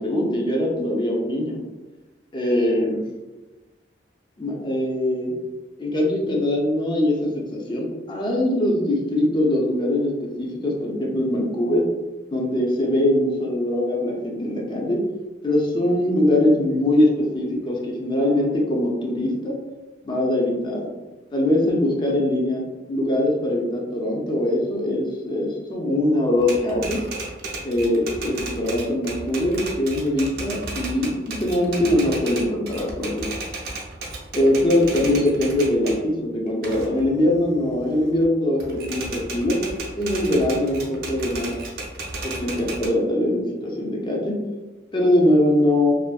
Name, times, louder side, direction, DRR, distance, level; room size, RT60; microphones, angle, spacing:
voice 1, 0.0-1.6 2.3-3.0 4.4-5.3 5.8-11.9 12.3-15.1 15.4-19.6 20.0-20.9 21.3-22.6 22.9-27.0 27.6-33.3 34.3-39.6 39.9-41.6 42.2-44.4 44.9-46.0, left 1 dB, 25° left, -1 dB, 0.4 m, -22 dB
Typewriter, 26.4-36.0 36.5-38.2 38.6-42.9, right 2 dB, 60° right, 0.6 m, -34 dB
2.6 x 2.4 x 2.3 m, 1.2 s
head